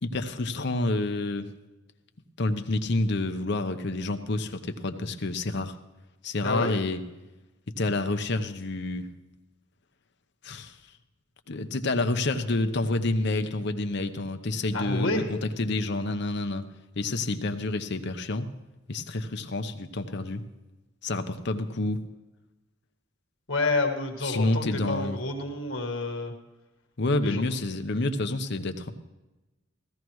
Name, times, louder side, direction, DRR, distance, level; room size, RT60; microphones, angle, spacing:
voice 1, 0.0-1.5 2.4-5.7 6.2-7.0 7.8-9.1 10.4-10.8 11.5-16.6 17.0-18.5 18.9-20.4 21.0-22.0 24.2-25.2 27.0-28.9, left 2 dB, 60° left, 8 dB, 0.8 m, -28 dB
voice 2, 14.7-15.2 23.5-26.3 27.2-27.4, left 2 dB, 90° left, 3 dB, 1.7 m, -28 dB
16.5 x 14.5 x 3.1 m, 1.1 s
head